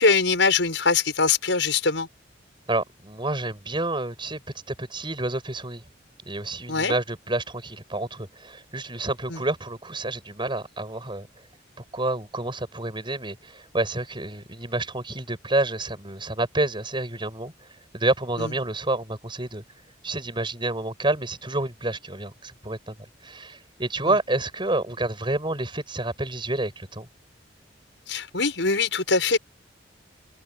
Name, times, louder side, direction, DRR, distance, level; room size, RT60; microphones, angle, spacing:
voice 1, 0.0-2.1 6.7-6.9 9.3-9.4 18.4-18.5 24.0-24.1 28.1-29.4, left 4 dB, 80° left, 6.3 m, -22 dB
voice 2, 2.7-4.4 4.7-5.8 6.3-11.3 11.9-17.5 17.9-19.6 20.0-23.0 23.2-27.1, right 2 dB, 25° right, 7.6 m, -29 dB
head